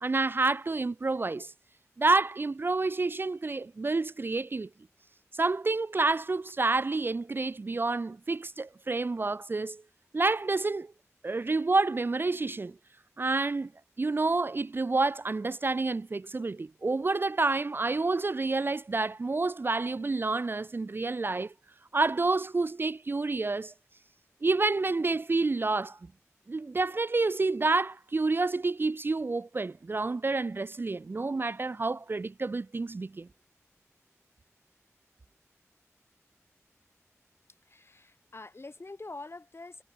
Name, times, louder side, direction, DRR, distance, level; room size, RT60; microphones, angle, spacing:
voice 1, 0.0-1.5 2.0-4.7 5.3-9.8 10.1-10.9 11.2-12.7 13.2-13.7 14.0-21.5 21.9-23.7 24.4-26.0 26.5-33.3, right 3 dB, 40° right, 0.3 m, -29 dB
voice 2, 37.6-39.8, left 3 dB, 50° left, 3.8 m, -45 dB
cardioid pair, 50°, 5 cm